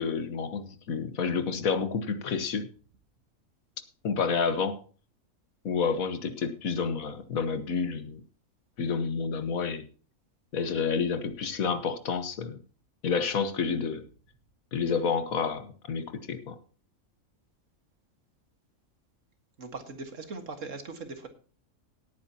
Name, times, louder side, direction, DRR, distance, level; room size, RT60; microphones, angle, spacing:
voice 1, 0.0-2.7 4.0-4.8 5.6-8.2 8.8-9.9 10.5-12.6 13.0-14.0 14.7-16.6, left 5 dB, 80° left, 10 dB, 1.6 m, -29 dB
voice 2, 19.6-21.3, right 3 dB, 65° right, 7 dB, 2.0 m, -40 dB
18.0 x 9.2 x 2.9 m, 0.39 s
omnidirectional pair, 1.4 m